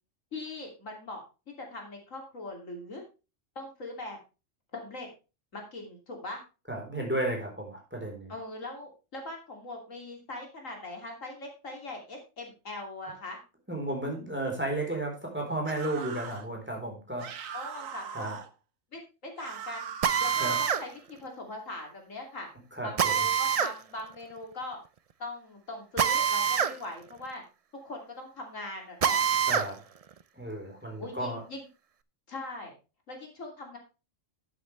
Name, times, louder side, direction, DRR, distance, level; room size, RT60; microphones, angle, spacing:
voice 1, 0.3-1.2 1.6-3.0 3.5-4.2 4.7-5.1 5.5-6.4 8.3-13.4 17.5-18.4 18.9-19.9 20.2-22.5 22.8-24.8 25.2-27.4 27.8-29.2 31.0-31.6 32.3-32.7 33.1-33.8, left 2 dB, 75° left, 2 dB, 3.2 m, -41 dB
voice 2, 6.7-8.3 13.7-17.3 18.1-18.4 20.4-20.6 22.8-23.2 29.5-29.8 30.3-31.4, right 1 dB, 10° right, 0 dB, 4.0 m, -33 dB
sound 1, 15.6-16.5 17.2-18.5 19.4-20.9, right 8 dB, 85° right, 1.4 m, -40 dB
Drill, 20.0-20.8 23.0-23.7 26.0-26.7 27.1-27.2 29.0-29.7, right 7 dB, 50° right, 0.4 m, -25 dB
11.5 x 9.2 x 3.3 m, 0.30 s
omnidirectional pair, 1.3 m